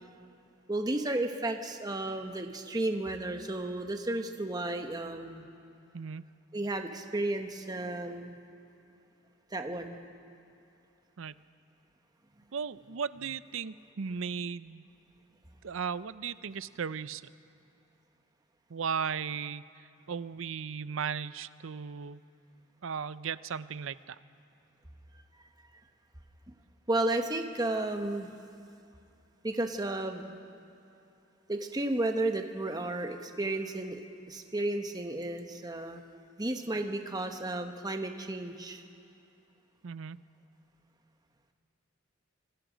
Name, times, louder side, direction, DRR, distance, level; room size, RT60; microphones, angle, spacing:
voice 1, 0.7-5.5 6.5-8.4 9.5-10.0 26.9-28.3 29.4-30.3 31.5-34.0 34.3-36.0 36.4-38.8, right 2 dB, 20° right, 5 dB, 1.1 m, -33 dB
voice 2, 5.9-6.3 11.2-11.3 12.5-14.8 15.6-17.2 18.7-22.2 22.8-24.2 39.8-40.2, right 6 dB, 70° right, 16 dB, 0.5 m, -36 dB
26.0 x 25.0 x 5.1 m, 2.6 s
head